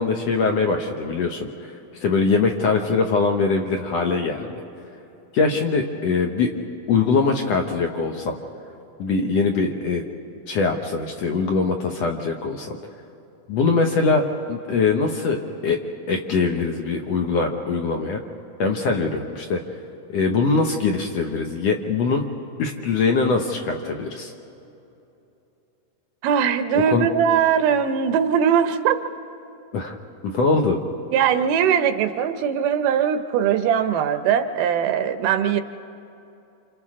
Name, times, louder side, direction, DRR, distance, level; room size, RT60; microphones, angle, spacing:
voice 1, 0.0-1.5 2.0-4.6 5.3-6.5 6.9-8.4 9.0-10.0 10.5-12.8 13.5-15.8 16.1-18.2 18.6-19.6 20.1-22.3 22.6-24.3 26.9-27.1 29.7-30.0 30.2-30.8, left 4 dB, 65° left, 2 dB, 1.7 m, -22 dB
voice 2, 26.2-29.0 31.1-35.6, right 8 dB, 80° right, 9 dB, 2.3 m, -20 dB
29.0 x 27.5 x 3.7 m, 2.8 s
omnidirectional pair, 3.8 m